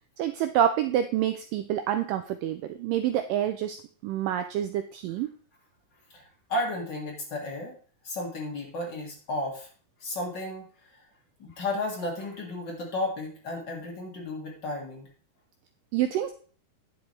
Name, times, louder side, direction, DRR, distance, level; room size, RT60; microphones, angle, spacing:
voice 1, 0.2-3.8 4.0-5.3 15.9-16.3, right 11 dB, 85° right, 9 dB, 1.9 m, -27 dB
voice 2, 6.1-7.8 8.0-9.7 10.0-11.0 11.4-15.1, left 1 dB, 35° left, -1 dB, 2.2 m, -33 dB
10.0 x 7.8 x 3.2 m, 0.43 s
omnidirectional pair, 4.4 m